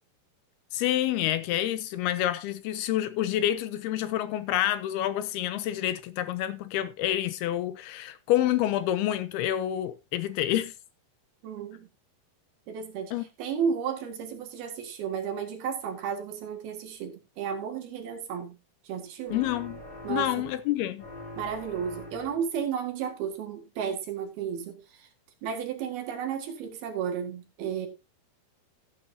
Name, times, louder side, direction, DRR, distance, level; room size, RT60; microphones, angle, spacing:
voice 1, 0.7-10.7 13.1-13.2 19.3-19.8 20.1-21.0, left 12 dB, 80° left, 2.5 m, -28 dB
voice 2, 11.4-11.9 12.7-18.6 18.9-19.4 20.0-20.5 21.4-25.1 25.4-27.9, right 7 dB, 65° right, 3.6 m, -33 dB
sound 1, 19.3-20.7 21.0-22.5, left 1 dB, 45° left, 4.5 m, -43 dB
15.5 x 9.0 x 2.7 m
omnidirectional pair, 4.8 m